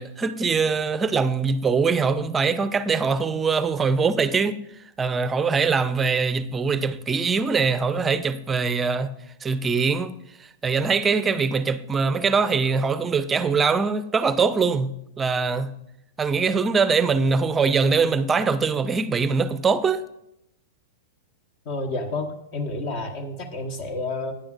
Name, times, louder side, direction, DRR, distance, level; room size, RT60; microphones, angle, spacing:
voice 1, 0.0-4.6 5.0-9.1 9.4-10.2 10.6-15.7 16.2-20.0, right 5 dB, 15° right, 0.6 m, -22 dB
voice 2, 21.6-24.3, left 2 dB, 45° left, 1.2 m, -30 dB
16.5 x 10.0 x 2.5 m
figure-of-eight pair, 100°, 0 cm